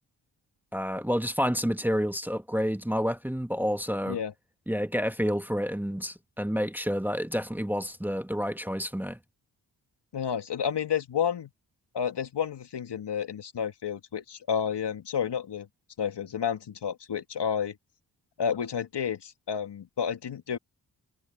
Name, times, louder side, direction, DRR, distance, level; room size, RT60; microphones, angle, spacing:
voice 1, 0.7-4.2 4.7-9.2, equal, 5° right, 1.5 m, -29 dB
voice 2, 10.1-11.5 11.9-15.7 16.0-17.8 18.4-20.6, left 8 dB, 65° left, 2.2 m, -30 dB
cardioid pair, 50°, 43 cm